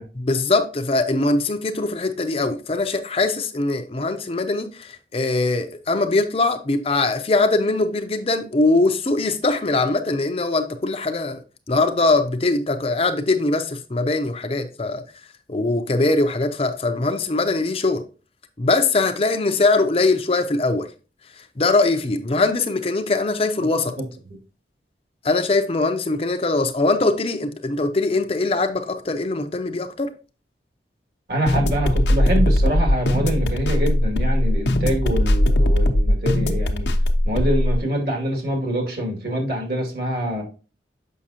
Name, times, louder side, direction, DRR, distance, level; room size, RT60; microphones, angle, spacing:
voice 1, 0.2-11.4 11.7-15.0 15.5-18.0 18.6-20.9 21.4-23.9 25.2-30.1, left 3 dB, 35° left, 0.5 m, -21 dB
voice 2, 31.3-36.9 37.2-40.4, right 1 dB, 60° right, 2.3 m, -25 dB
sound 1, 31.5-37.8, left 1 dB, 80° left, 0.8 m, -19 dB
7.3 x 5.7 x 2.8 m
head